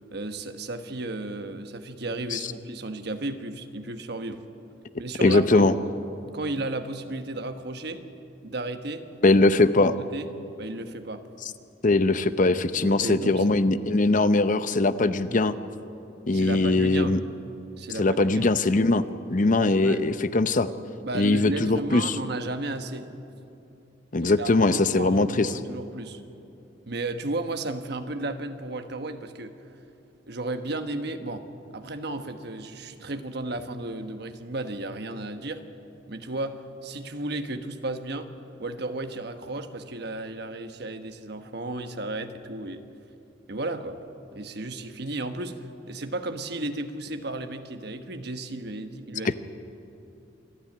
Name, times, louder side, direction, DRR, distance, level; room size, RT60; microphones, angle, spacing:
voice 1, 0.0-4.4 5.0-5.7 6.3-8.0 8.4-9.0 9.8-10.3 10.6-11.2 12.8-13.4 16.3-17.2 17.8-18.5 19.8-20.0 21.0-23.1 24.2-26.2 26.9-29.5 30.3-31.4 31.7-35.6 36.1-38.3 38.6-42.8 43.5-44.0 44.3-49.3, right 2 dB, 60° right, 8 dB, 1.2 m, -34 dB
voice 2, 5.2-5.7 9.2-9.9 11.8-15.6 16.3-17.2 18.0-20.7 21.1-22.2 24.1-25.5 49.2-49.3, left 2 dB, 45° left, 12 dB, 0.7 m, -21 dB
26.5 x 10.5 x 9.5 m, 2.7 s
head